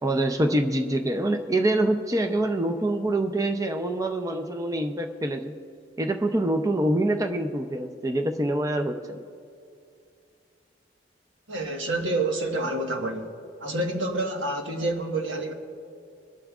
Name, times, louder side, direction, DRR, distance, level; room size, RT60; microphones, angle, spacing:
voice 1, 0.0-5.5 6.0-9.2, right 1 dB, 20° right, 5 dB, 0.6 m, -25 dB
voice 2, 11.5-13.3 13.6-15.5, right 2 dB, 85° right, 2 dB, 1.5 m, -28 dB
24.0 x 11.5 x 2.4 m, 2.5 s
head